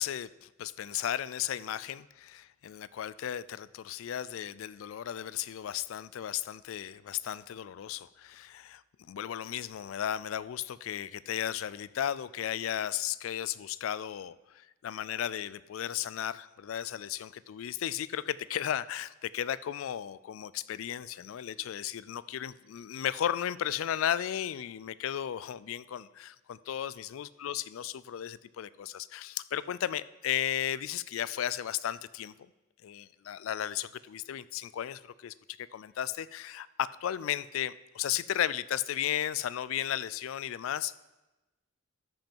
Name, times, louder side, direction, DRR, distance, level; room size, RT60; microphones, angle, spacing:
voice 1, 0.0-8.8 9.1-32.3 32.8-35.3 35.7-40.9, left 10 dB, 80° left, 18 dB, 0.3 m, -35 dB
13.0 x 5.4 x 4.5 m, 1.1 s
head